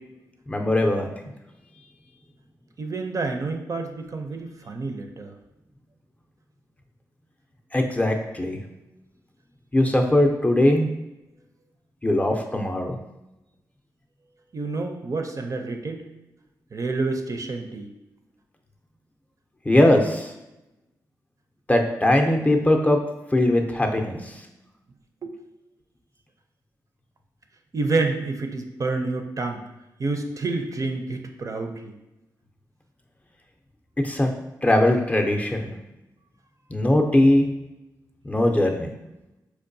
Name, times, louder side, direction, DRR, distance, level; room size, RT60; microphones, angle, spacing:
voice 1, 0.5-1.3 7.7-8.6 9.7-10.9 12.0-13.0 19.7-20.3 21.7-23.0 23.3-24.3 34.0-34.3 34.6-35.7 36.7-37.5 38.2-38.9, left 1 dB, 20° left, 2 dB, 0.5 m, -20 dB
voice 2, 2.8-5.3 14.5-16.0 16.7-17.9 25.2-25.4 27.7-29.6 30.0-31.9, right 3 dB, 45° right, 4 dB, 0.5 m, -28 dB
4.5 x 2.2 x 2.6 m, 0.96 s
cardioid pair, 55°, 8 cm